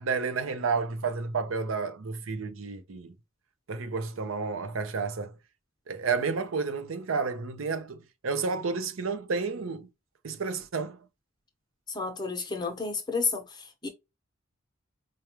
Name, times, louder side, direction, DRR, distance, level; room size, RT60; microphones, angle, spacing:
voice 1, 0.0-3.1 3.7-5.3 5.9-8.0 8.2-9.9 10.2-11.0, right 4 dB, 80° right, 0.6 m, -31 dB
voice 2, 11.9-13.9, left 4 dB, 20° left, 0.8 m, -31 dB
4.7 x 2.2 x 2.9 m
head